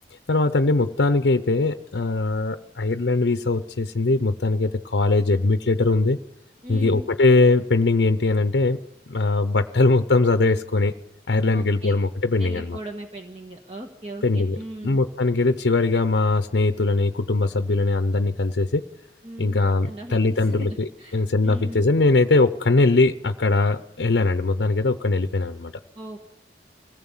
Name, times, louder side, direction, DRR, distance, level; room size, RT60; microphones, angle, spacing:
voice 1, 0.3-6.2 6.7-8.8 9.1-10.9 11.3-12.8 14.2-14.6 14.8-18.8 19.4-25.7, left 3 dB, 80° left, 9 dB, 0.7 m, -21 dB
voice 2, 6.6-7.1 11.5-12.0 12.4-15.0 19.2-19.6 19.8-21.8 25.9-26.4, right 1 dB, 35° right, 2 dB, 1.5 m, -38 dB
25.0 x 17.0 x 7.3 m, 0.91 s
head